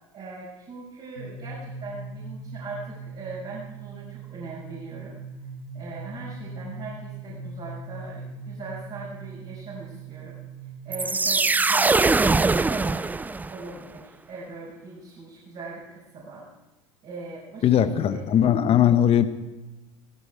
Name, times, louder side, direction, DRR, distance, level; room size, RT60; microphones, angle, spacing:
voice 1, 0.1-5.1 5.7-10.3 10.8-13.0 13.5-16.4 17.0-18.2, right 3 dB, 40° right, -6 dB, 5.6 m, -40 dB
sound 1, 1.2-11.0, right 3 dB, 90° right, 1.7 m, -40 dB
sound 2, 10.9-13.7, right 3 dB, 10° right, 0.4 m, -22 dB
voice 2, 17.6-19.3, left 10 dB, 35° left, 11 dB, 1.1 m, -19 dB
16.0 x 16.0 x 4.5 m, 1.1 s
hypercardioid pair, 75°, 17 cm